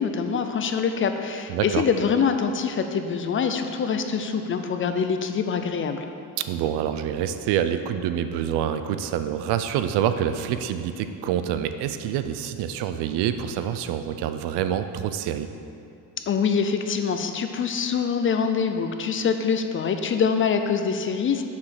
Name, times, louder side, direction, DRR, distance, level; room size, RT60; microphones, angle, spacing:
voice 1, 0.0-6.0 16.3-21.4, left 6 dB, 30° left, 7 dB, 0.4 m, -24 dB
voice 2, 1.5-1.8 6.4-15.5, right 9 dB, 80° right, 10 dB, 0.6 m, -26 dB
6.9 x 5.0 x 6.6 m, 2.5 s
cardioid pair, 135°, 40 cm